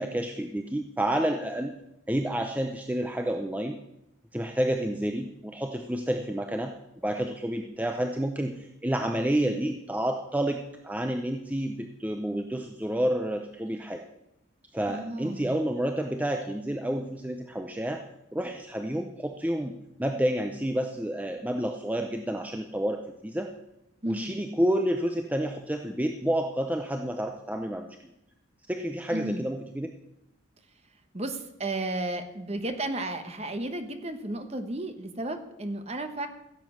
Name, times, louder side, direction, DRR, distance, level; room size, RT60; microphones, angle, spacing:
voice 1, 0.0-1.7 2.1-3.8 4.3-6.7 7.0-14.0 14.7-18.0 18.3-23.5 24.1-28.1 28.7-29.9, right 1 dB, 5° right, 4 dB, 0.6 m, -29 dB
voice 2, 14.9-15.5 24.0-24.4 29.1-29.5 31.1-36.3, right 2 dB, 30° right, 8 dB, 1.1 m, -33 dB
15.5 x 7.7 x 6.4 m, 0.86 s
head